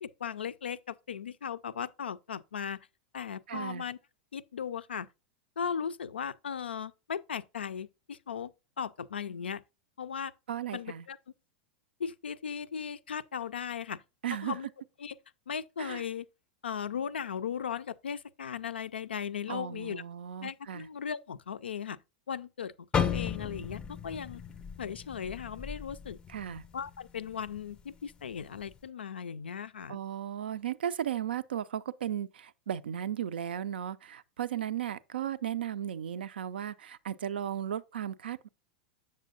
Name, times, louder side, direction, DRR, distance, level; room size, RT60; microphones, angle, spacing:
voice 1, 0.0-2.8 3.1-4.0 4.3-5.1 5.6-9.6 10.0-10.3 10.7-11.2 12.0-14.0 14.4-14.7 15.0-15.1 15.5-16.3 16.6-20.0 20.4-22.0 22.3-24.4 24.8-26.2 26.7-30.0, left 7 dB, 75° left, 0.3 m, -37 dB
voice 2, 3.5-3.8 10.5-11.0 14.2-14.6 15.8-16.0 19.5-20.9 26.3-26.6 29.9-38.5, right 10 dB, 70° right, 0.4 m, -35 dB
sound 1, 22.9-27.0 27.3-27.6 28.2-28.6, left 7 dB, 15° left, 0.4 m, -35 dB
7.4 x 6.5 x 2.4 m
figure-of-eight pair, 95°, 6 cm